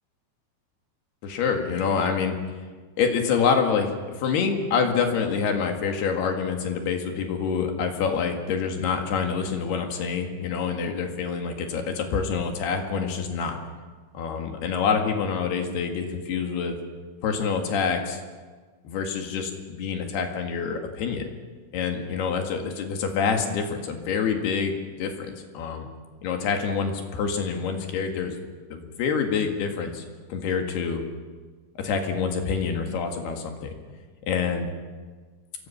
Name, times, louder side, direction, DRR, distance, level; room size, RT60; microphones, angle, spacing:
voice 1, 1.2-2.4 3.0-13.6 14.1-16.8 17.2-18.2 18.9-21.3 21.7-25.9 26.2-28.4 28.7-30.0 30.3-31.0 31.8-33.7 34.3-34.7, left 6 dB, 65° left, 3 dB, 3.7 m, -26 dB
27.5 x 22.0 x 5.8 m, 1.5 s
omnidirectional pair, 5.5 m